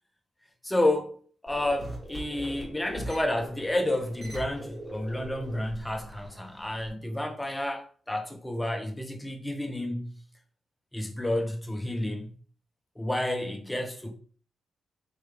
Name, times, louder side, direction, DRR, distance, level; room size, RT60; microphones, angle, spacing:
voice 1, 0.6-1.2 1.4-10.2 10.9-12.3 13.0-14.1, left 1 dB, 10° left, 0.7 m, -30 dB
sound 1, 1.5-6.9, right 1 dB, 25° right, 1.9 m, -42 dB
4.4 x 3.6 x 3.4 m
wide cardioid pair, 155°, 0 cm